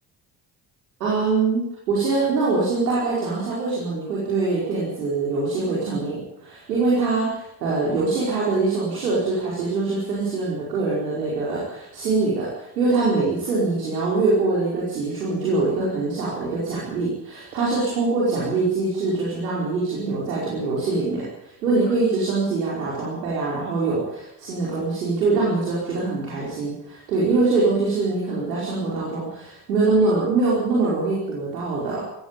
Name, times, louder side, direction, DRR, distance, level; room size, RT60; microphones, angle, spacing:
voice 1, 1.0-1.6 1.9-32.0, right 3 dB, 85° right, -6 dB, 5.1 m, -23 dB
19.0 x 15.5 x 9.1 m, 0.79 s
hypercardioid pair, 45°, 47 cm